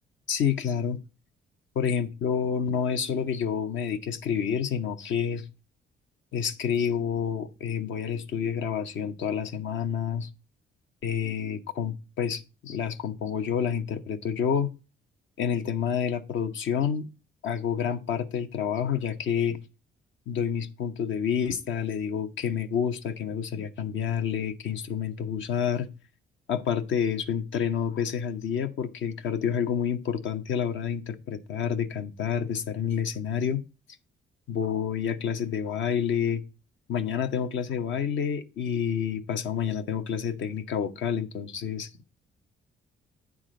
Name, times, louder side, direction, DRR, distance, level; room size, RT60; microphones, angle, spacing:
voice 1, 0.3-1.0 1.7-5.5 6.3-10.3 11.0-14.7 15.4-17.1 17.4-19.6 20.3-25.9 26.5-33.6 34.5-36.4 36.9-41.9, left 7 dB, 70° left, 1.0 m, -29 dB
9.2 x 3.8 x 6.2 m
cardioid pair, 90°, 20 cm